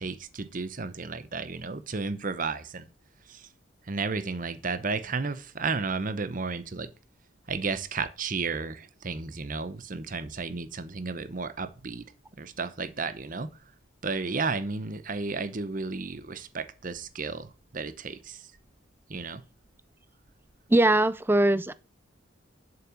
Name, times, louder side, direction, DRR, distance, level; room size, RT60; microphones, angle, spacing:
voice 1, 0.0-2.9 3.3-3.5 3.9-6.9 7.5-12.1 12.4-13.5 14.0-18.5 19.1-19.4, right 4 dB, 40° right, 0.8 m, -33 dB
voice 2, 20.7-21.7, right 1 dB, 10° right, 0.4 m, -21 dB
7.7 x 5.8 x 7.6 m
head